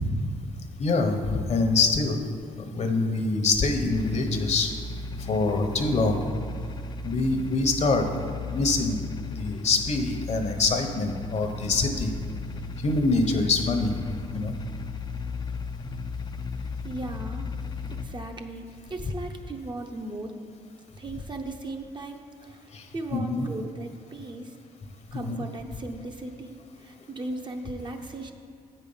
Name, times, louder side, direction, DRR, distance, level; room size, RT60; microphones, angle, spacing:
voice 1, 0.8-2.2 2.6-4.7 5.3-6.2 7.0-8.1 8.4-9.0 9.4-12.1 12.8-13.9 14.3-14.5 22.7-22.8 23.1-23.5 25.1-25.4, left 3 dB, 50° left, 5 dB, 1.0 m, -25 dB
sound 1, 3.9-18.0, left 4 dB, 30° left, 0.5 m, -36 dB
voice 2, 16.6-17.5 17.9-20.5 21.0-24.5 25.1-26.5 26.8-28.3, right 2 dB, 30° right, 3 dB, 0.8 m, -37 dB
8.2 x 5.4 x 5.6 m, 2.3 s
cardioid pair, 80°, 15 cm